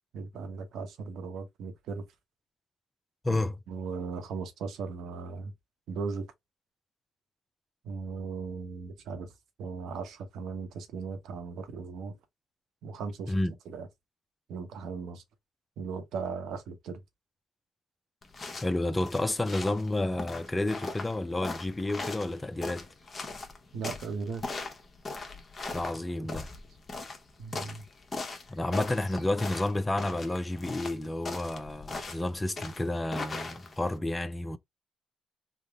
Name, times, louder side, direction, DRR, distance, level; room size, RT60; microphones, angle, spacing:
voice 1, 0.1-2.0 3.3-5.5 5.9-6.3 7.8-9.3 9.6-12.2 12.8-13.3 13.7-13.9 14.5-15.2 15.8-17.0 23.7-24.5 25.7-25.8 27.4-27.9, right 5 dB, 75° right, 0.8 m, -37 dB
voice 2, 3.2-3.6 13.3-13.5 18.5-22.9 25.7-26.5 28.5-34.6, left 1 dB, 15° left, 0.4 m, -30 dB
sound 1, 18.2-34.0, left 3 dB, 30° left, 0.9 m, -40 dB
3.5 x 2.0 x 3.4 m
cardioid pair, 90°, 0 cm